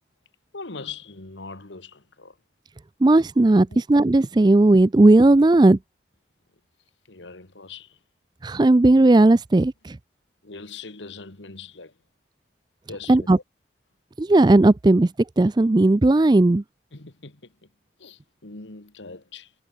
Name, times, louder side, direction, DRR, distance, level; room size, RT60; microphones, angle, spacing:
voice 1, 0.5-2.4 3.7-3.8 7.1-8.0 10.4-12.0 12.9-13.3 16.9-17.7 18.0-19.5, left 4 dB, 80° left, 1.9 m, -41 dB
voice 2, 3.0-5.8 8.4-10.0 13.1-13.4 14.2-15.1 15.4-16.6, right 2 dB, 25° right, 0.4 m, -16 dB
head